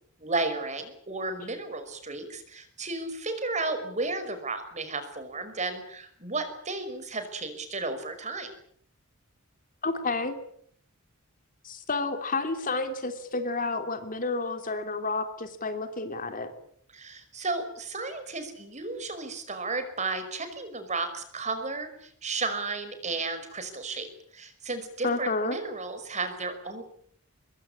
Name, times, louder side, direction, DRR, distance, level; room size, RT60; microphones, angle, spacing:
voice 1, 0.2-8.5 16.9-24.1 24.3-26.8, right 3 dB, 30° right, 9 dB, 5.4 m, -33 dB
voice 2, 9.8-10.3 11.6-16.5 25.0-25.6, left 3 dB, 40° left, 7 dB, 3.0 m, -30 dB
25.0 x 22.0 x 8.7 m, 0.63 s
head